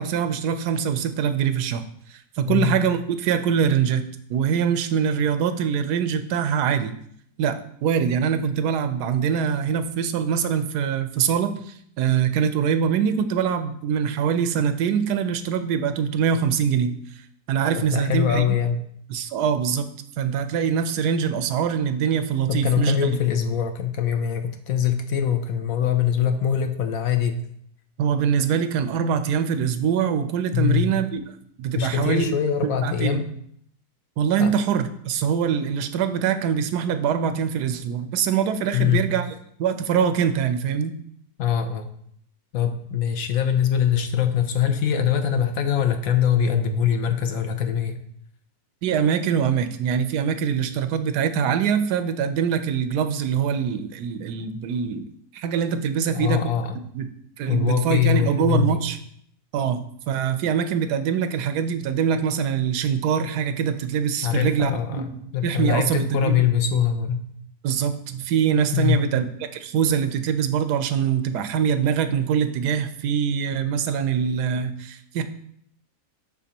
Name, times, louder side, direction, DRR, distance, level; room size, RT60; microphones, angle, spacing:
voice 1, 0.0-1.8 2.1-6.9 7.4-17.0 17.5-18.4 19.1-23.1 28.0-31.2 31.6-32.4 32.8-33.2 34.2-39.2 39.6-40.9 48.8-55.1 55.3-56.4 56.7-57.1 57.4-59.0 59.5-66.4 67.6-69.2 69.5-75.2, right 7 dB, 90° right, 10 dB, 1.2 m, -23 dB
voice 2, 2.5-2.8 17.8-18.8 22.5-27.4 30.5-30.9 31.7-33.3 34.4-34.5 38.7-39.0 41.4-41.9 42.5-48.0 56.0-56.8 57.5-58.8 64.2-65.1 65.3-67.2 68.7-69.0, left 9 dB, 70° left, 7 dB, 1.0 m, -23 dB
11.0 x 3.7 x 2.9 m, 0.67 s
omnidirectional pair, 1.7 m